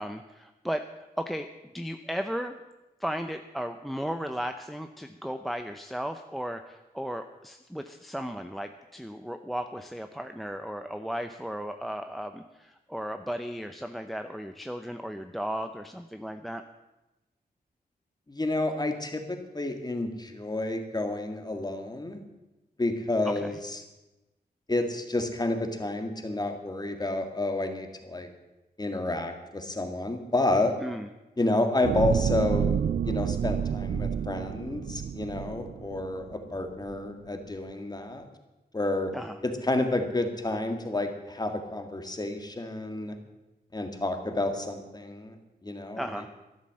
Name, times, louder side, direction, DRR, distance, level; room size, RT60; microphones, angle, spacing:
voice 1, 0.0-1.5 1.7-2.5 3.0-16.6 23.4-23.6 30.8-31.1 39.1-39.4 46.0-46.3, equal, ahead, 7 dB, 0.7 m, -35 dB
voice 2, 18.3-22.2 22.8-23.8 24.7-28.3 28.8-30.7 31.4-32.8 33.0-38.3 38.7-39.1 39.4-43.2 43.7-45.4 45.6-46.2, left 2 dB, 25° left, 6 dB, 2.0 m, -30 dB
sound 1, 31.8-36.3 36.8-36.9, right 8 dB, 65° right, 0.5 m, -29 dB
13.0 x 11.5 x 7.6 m, 1.0 s
wide cardioid pair, 100°, 17 cm